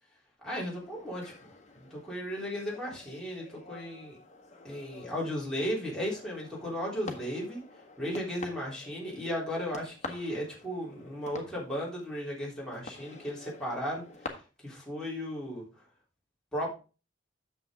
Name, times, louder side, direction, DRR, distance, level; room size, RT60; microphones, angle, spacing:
voice 1, 0.4-1.5 1.8-4.2 4.6-7.6 8.0-15.6 16.5-16.8, equal, 5° left, -5 dB, 3.4 m, -35 dB
sound 1, 0.7-14.3, left 3 dB, 35° left, 1.5 m, -48 dB
9.3 x 7.0 x 3.7 m, 0.33 s
head